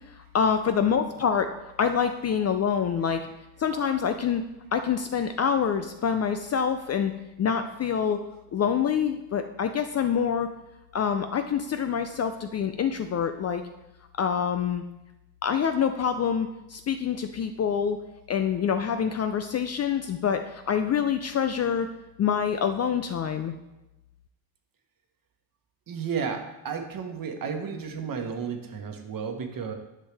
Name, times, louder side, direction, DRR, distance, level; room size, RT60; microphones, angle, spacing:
voice 1, 0.1-1.5 1.8-3.2 3.6-4.4 4.7-7.1 7.4-8.2 8.5-10.5 10.9-13.6 14.2-14.8 15.4-18.0 18.3-21.9 22.2-23.5, left 7 dB, 35° left, 8 dB, 0.4 m, -26 dB
voice 2, 25.9-29.7, right 6 dB, 45° right, 5 dB, 1.3 m, -33 dB
9.9 x 5.5 x 3.4 m, 0.97 s
supercardioid pair, 90°, 48 cm